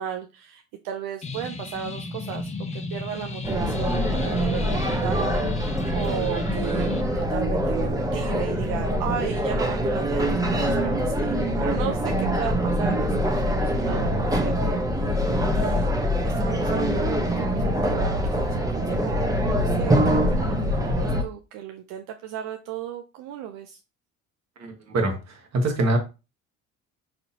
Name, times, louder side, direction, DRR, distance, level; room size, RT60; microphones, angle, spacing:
voice 1, 0.0-6.9 7.1-15.9 16.2-23.8, right 9 dB, 75° right, 0.5 m, -35 dB
sound 1, 1.2-7.0, left 3 dB, 20° left, 0.6 m, -34 dB
sound 2, 3.4-21.2, equal, 10° right, 0.8 m, -24 dB
voice 2, 24.6-26.0, right 2 dB, 50° right, 1.2 m, -25 dB
4.1 x 2.8 x 2.7 m
supercardioid pair, 80°, 34 cm